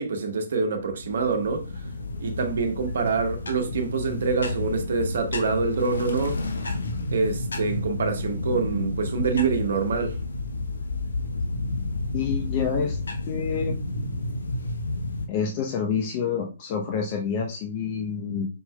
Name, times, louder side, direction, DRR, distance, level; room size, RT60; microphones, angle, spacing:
voice 1, 0.0-1.7 2.2-6.4 7.1-10.2, right 4 dB, 60° right, 1.1 m, -26 dB
sound 1, 0.8-15.3, left 2 dB, 75° left, 0.8 m, -31 dB
voice 2, 12.1-13.0 13.3-13.8 15.3-18.5, left 6 dB, 35° left, 0.7 m, -28 dB
5.4 x 4.4 x 2.2 m
figure-of-eight pair, 125°, 0 cm